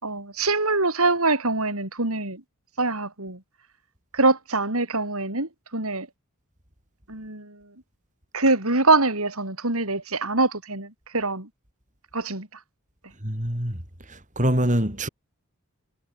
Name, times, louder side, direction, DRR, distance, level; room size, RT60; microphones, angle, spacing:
voice 1, 0.0-2.4 2.8-3.4 4.1-6.1 7.1-7.6 8.3-11.5 12.1-12.5, right 3 dB, 70° right, 5.5 m, -24 dB
voice 2, 13.2-13.8 14.1-15.1, right 1 dB, 35° right, 6.6 m, -24 dB
head